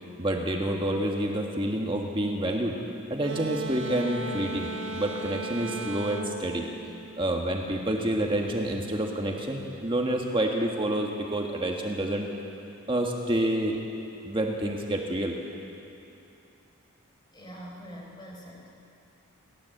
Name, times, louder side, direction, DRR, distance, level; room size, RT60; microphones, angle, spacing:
voice 1, 0.2-2.8 3.1-6.6 7.2-12.3 12.9-13.8 14.2-15.3, right 1 dB, 25° right, 1 dB, 1.5 m, -28 dB
sound 1, 3.2-7.7, right 2 dB, 55° right, 1.1 m, -37 dB
voice 2, 17.3-18.7, equal, 20° left, -2 dB, 3.9 m, -44 dB
30.0 x 13.0 x 7.8 m, 2.8 s
head